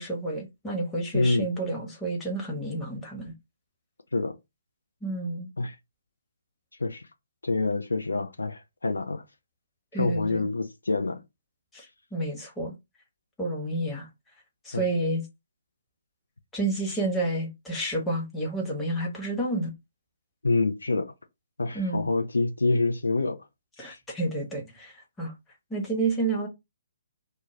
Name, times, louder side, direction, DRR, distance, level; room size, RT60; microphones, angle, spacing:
voice 1, 0.0-3.3 5.0-5.5 9.9-10.5 11.7-11.9 12.1-12.7 13.4-14.1 14.6-15.2 16.5-19.7 21.7-22.1 23.8-25.3 25.7-26.5, right 2 dB, 10° left, 0.9 m, -30 dB
voice 2, 1.1-1.5 4.1-4.3 5.6-5.7 6.8-7.0 7.4-9.2 10.0-11.2 14.7-14.9 20.4-21.1 21.6-23.4 23.8-24.0, left 3 dB, 75° left, 0.4 m, -26 dB
2.2 x 2.0 x 3.0 m
figure-of-eight pair, 135°, 0 cm